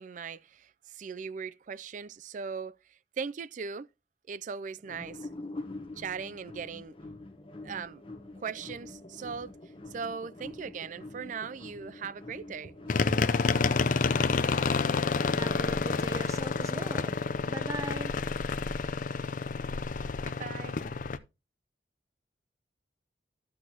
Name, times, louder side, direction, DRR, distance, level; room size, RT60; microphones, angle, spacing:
voice 1, 0.0-3.9 4.3-5.3 6.0-7.0 7.6-8.0 8.4-9.5 9.9-12.7 13.1-13.2 20.2-21.1, right 6 dB, 45° right, 0.4 m, -39 dB
sound 1, 4.8-15.5, left 2 dB, 30° left, 1.0 m, -45 dB
sound 2, 12.9-21.2, left 4 dB, 45° left, 0.5 m, -29 dB
voice 2, 15.3-17.2 17.5-18.1, right 2 dB, 15° right, 0.8 m, -40 dB
14.0 x 6.3 x 2.8 m
head